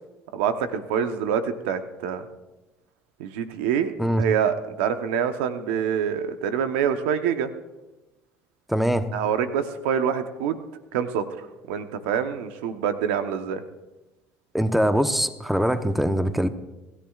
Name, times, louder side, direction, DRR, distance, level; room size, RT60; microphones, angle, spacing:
voice 1, 0.3-2.3 3.2-7.5 9.1-10.6 10.9-13.6, right 8 dB, 90° right, 9 dB, 1.0 m, -26 dB
voice 2, 8.7-9.1 14.5-16.5, equal, ahead, 9 dB, 0.9 m, -22 dB
26.5 x 13.5 x 2.4 m, 1.0 s
supercardioid pair, 90°, 6 cm